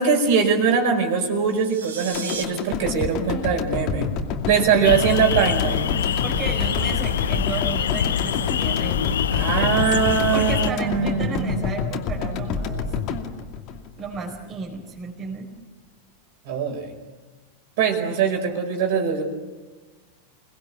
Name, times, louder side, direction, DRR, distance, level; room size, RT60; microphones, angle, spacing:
voice 1, 0.0-4.1 4.5-5.9 9.3-11.6 16.5-17.0 17.8-19.2, right 6 dB, 50° right, 4 dB, 5.2 m, -22 dB
sound 1, 1.4-2.4, right 5 dB, 70° right, 3.8 m, -34 dB
sound 2, 2.1-14.4 14.7-14.8, left 5 dB, 40° left, 2.5 m, -28 dB
sound 3, 4.8-10.7, left 9 dB, 65° left, 0.7 m, -25 dB
voice 2, 6.2-9.8 10.3-12.9 14.0-15.5, right 4 dB, 25° right, 0 dB, 4.4 m, -33 dB
28.5 x 20.0 x 8.7 m, 1.3 s
figure-of-eight pair, 90°, 0 cm